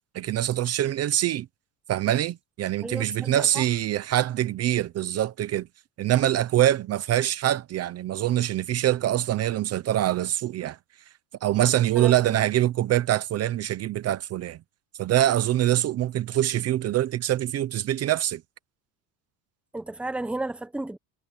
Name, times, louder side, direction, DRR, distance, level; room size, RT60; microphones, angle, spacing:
voice 1, 0.1-1.5 1.9-5.7 6.0-10.8 11.4-14.6 15.0-18.4, right 12 dB, 40° right, 0.8 m, -24 dB
voice 2, 2.8-3.6 12.0-12.4 19.7-21.0, right 2 dB, 5° right, 0.9 m, -33 dB
cardioid pair, 150°, 40 cm